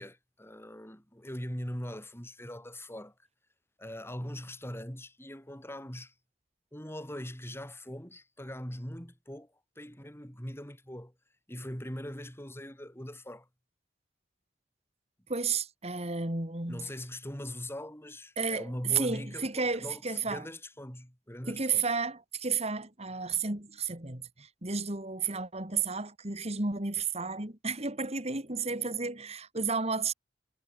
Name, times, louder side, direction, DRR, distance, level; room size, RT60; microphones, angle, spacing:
voice 1, 0.0-3.1 3.8-6.1 6.7-11.1 11.5-13.5 16.7-21.9, left 1 dB, 15° left, 6.8 m, -41 dB
voice 2, 15.3-16.9 18.4-20.4 21.5-30.1, right 4 dB, 35° right, 3.3 m, -32 dB
head